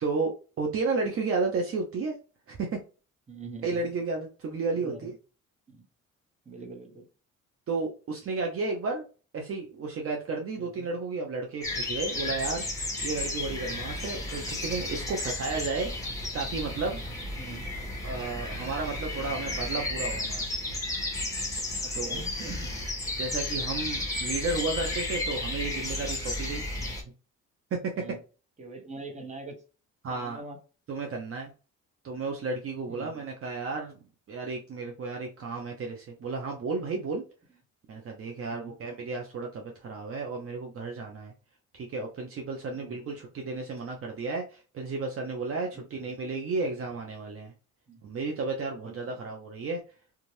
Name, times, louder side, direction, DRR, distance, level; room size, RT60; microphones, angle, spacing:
voice 1, 0.0-2.2 2.5-2.8 3.6-5.1 7.7-9.0 9.3-12.6 13.0-15.9 16.3-17.0 18.0-20.5 21.9-22.2 23.2-26.6 27.7-28.0 30.0-30.4 30.9-31.5 32.0-34.0 34.3-37.2 37.9-41.3 41.7-47.5 48.0-49.8, right 3 dB, 50° right, 1 dB, 0.7 m, -33 dB
voice 2, 3.3-3.9 4.7-5.1 5.7-5.9 6.4-7.1 10.6-10.9 17.4-17.7 21.8-22.7 26.8-26.9 28.0-28.2 28.6-29.6 30.1-30.6 32.9-33.1 38.5-38.7 42.7-43.0 45.7-46.1 47.9-48.0 48.8-49.2, right 3 dB, 25° right, 3 dB, 1.0 m, -44 dB
sound 1, 11.6-27.0, left 2 dB, 10° left, 1.1 m, -33 dB
2.6 x 2.4 x 3.1 m, 0.34 s
cardioid pair, 90°, 30 cm